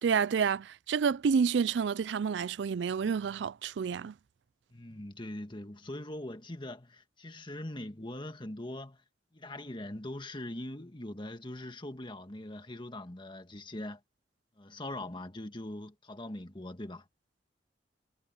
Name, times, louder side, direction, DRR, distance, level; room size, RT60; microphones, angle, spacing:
voice 1, 0.0-4.1, right 6 dB, 80° right, 0.4 m, -29 dB
voice 2, 4.7-9.0 9.3-14.0 14.6-17.0, left 1 dB, 25° left, 1.8 m, -42 dB
head